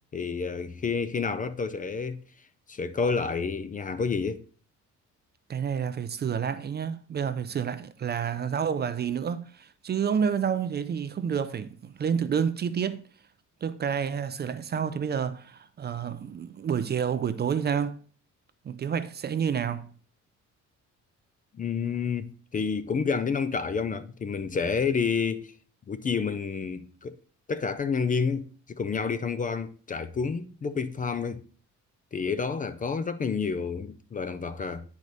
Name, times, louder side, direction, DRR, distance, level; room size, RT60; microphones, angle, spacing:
voice 1, 0.1-2.2 2.7-4.4 21.5-25.5 25.9-27.1 27.5-31.4 32.1-34.8, left 5 dB, 25° left, 0.5 m, -29 dB
voice 2, 5.5-13.0 13.6-18.0 18.6-19.9, right 7 dB, 35° right, 0.5 m, -29 dB
9.3 x 4.9 x 4.0 m
cardioid pair, 125°, 30 cm